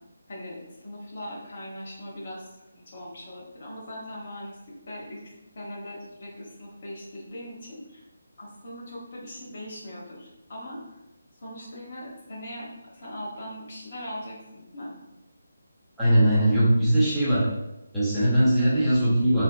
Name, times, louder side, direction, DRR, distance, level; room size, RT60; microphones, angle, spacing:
voice 1, 0.3-2.4 2.7-4.6 4.9-8.0 8.4-11.0 11.4-15.0, equal, 45° left, -4 dB, 1.0 m, -40 dB
voice 2, 16.0-17.5 17.9-19.4, right 1 dB, ahead, -13 dB, 0.7 m, -20 dB
3.4 x 2.7 x 2.2 m, 0.94 s
figure-of-eight pair, 150°, 0 cm